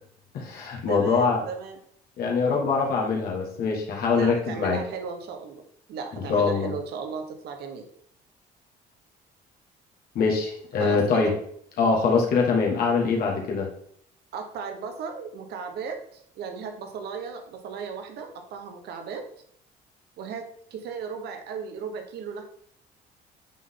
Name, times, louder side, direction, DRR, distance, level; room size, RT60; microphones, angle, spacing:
voice 1, 0.3-1.4 2.2-4.8 6.3-6.7 10.1-11.3 11.8-13.7, left 4 dB, 65° left, -1 dB, 1.7 m, -23 dB
voice 2, 0.9-1.8 4.1-5.6 5.9-7.8 10.8-11.4 14.3-19.2 20.2-22.4, right 6 dB, 75° right, 5 dB, 1.2 m, -36 dB
9.0 x 3.9 x 3.8 m, 0.67 s
cardioid pair, 110°, 17 cm